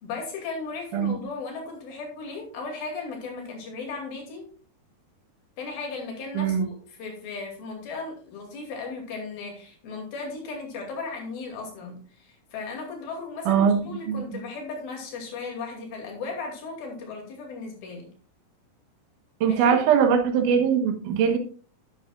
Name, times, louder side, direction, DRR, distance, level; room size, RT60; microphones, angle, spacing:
voice 1, 0.0-4.5 5.6-18.1 19.4-19.8, left 4 dB, 65° left, 1 dB, 4.2 m, -36 dB
voice 2, 6.3-6.7 13.5-13.8 14.1-14.4 19.4-21.4, right 7 dB, 65° right, 5 dB, 2.3 m, -21 dB
10.5 x 10.5 x 2.4 m, 0.41 s
omnidirectional pair, 4.7 m